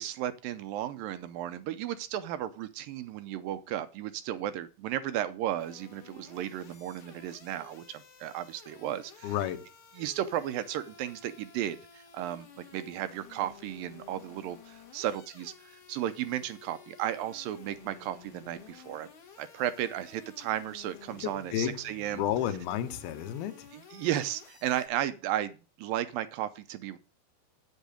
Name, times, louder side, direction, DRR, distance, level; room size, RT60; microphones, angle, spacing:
voice 1, 0.0-9.3 9.9-19.1 19.4-22.2 23.7-27.0, right 12 dB, 80° right, 2.2 m, -34 dB
sound 1, 5.6-24.9, left 7 dB, 45° left, 1.9 m, -53 dB
voice 2, 9.2-9.7 21.2-21.8 22.1-23.7, left 11 dB, 80° left, 2.8 m, -32 dB
8.8 x 8.2 x 5.0 m
omnidirectional pair, 4.5 m